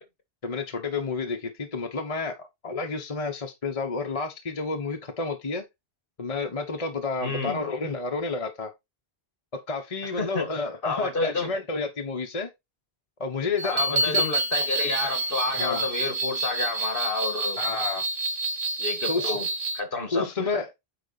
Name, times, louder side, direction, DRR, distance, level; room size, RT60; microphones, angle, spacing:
voice 1, 0.4-5.6 6.2-8.7 9.5-12.5 13.2-14.2 15.6-15.9 17.6-18.0 19.1-19.3 20.1-20.7, left 4 dB, 35° left, 1.1 m, -30 dB
voice 2, 7.2-7.6 10.2-11.5 13.6-17.6 18.8-19.5 19.7-20.3, left 3 dB, 60° left, 1.9 m, -30 dB
sound 1, 13.6-19.8, right 2 dB, 85° right, 1.6 m, -28 dB
9.3 x 3.8 x 4.0 m
omnidirectional pair, 1.1 m